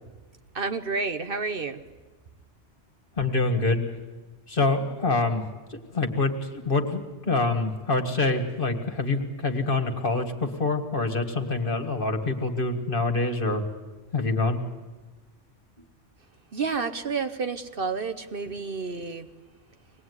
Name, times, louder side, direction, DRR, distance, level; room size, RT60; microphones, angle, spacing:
voice 1, 0.5-1.8 16.5-19.3, right 4 dB, 50° right, 8 dB, 1.1 m, -30 dB
voice 2, 3.2-3.8 4.5-5.4 5.7-13.6 14.1-14.6, left 3 dB, 45° left, 6 dB, 2.0 m, -26 dB
24.5 x 19.0 x 9.6 m, 1.2 s
omnidirectional pair, 1.2 m